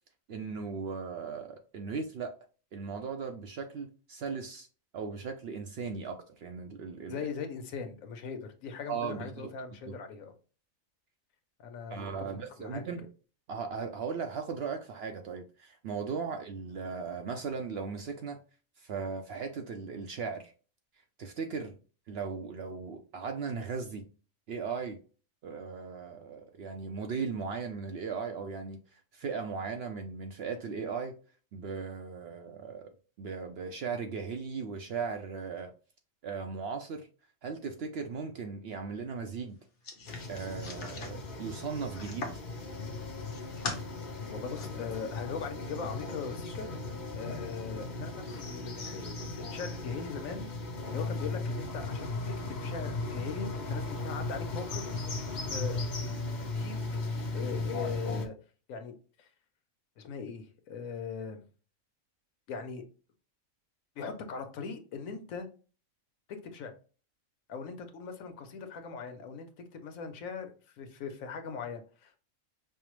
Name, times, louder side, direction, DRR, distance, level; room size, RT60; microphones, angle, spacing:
voice 1, 0.3-2.3 2.7-4.7 4.9-7.2 8.9-9.5 9.9-10.0 11.9-13.0 13.5-18.4 18.8-20.5 21.2-21.8 22.1-24.1 24.5-25.0 25.4-31.1 31.5-35.7 36.2-37.1 37.4-39.6 40.3-42.3, right 5 dB, 65° right, 0.6 m, -37 dB
voice 2, 7.1-10.3 11.6-12.1 12.6-12.8 44.3-46.7 47.1-49.0 49.4-50.5 50.9-52.1 52.5-54.9 55.3-56.1 56.6-56.8 57.3-58.3 58.7-59.3 60.0-61.4 62.5-62.8 64.0-65.5 66.3-66.7 67.5-72.2, left 5 dB, 80° left, 1.1 m, -40 dB
sound 1, 39.8-42.5 43.0-43.8 44.3-44.7, left 3 dB, 60° left, 1.2 m, -41 dB
sound 2, 40.1-58.3, left 3 dB, 40° left, 0.7 m, -37 dB
5.5 x 2.0 x 3.0 m
omnidirectional pair, 1.4 m